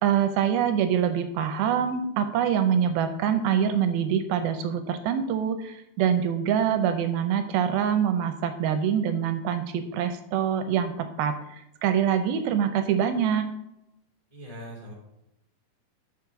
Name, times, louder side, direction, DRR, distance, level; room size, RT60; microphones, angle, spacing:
voice 1, 0.0-13.5, right 8 dB, 80° right, 8 dB, 2.4 m, -25 dB
voice 2, 14.3-14.9, equal, 15° left, -3 dB, 1.3 m, -41 dB
6.9 x 6.2 x 5.8 m, 0.86 s
omnidirectional pair, 4.5 m